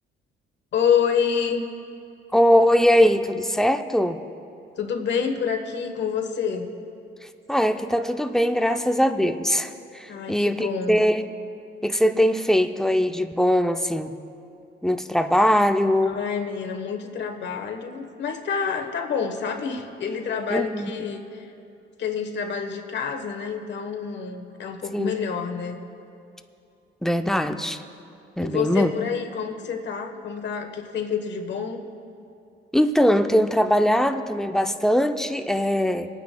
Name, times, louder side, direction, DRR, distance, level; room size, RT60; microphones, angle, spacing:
voice 1, 0.7-1.6 4.8-6.7 10.1-11.0 16.0-21.5 22.0-25.8 28.4-31.8, left 6 dB, 65° left, 4 dB, 1.2 m, -28 dB
voice 2, 2.3-4.2 7.5-11.3 11.8-14.2 14.8-16.2 20.5-20.9 24.9-25.1 27.0-27.8 28.4-28.9 32.7-36.1, equal, ahead, 7 dB, 0.5 m, -21 dB
27.5 x 9.3 x 2.2 m, 2.7 s
cardioid pair, 90°, 20 cm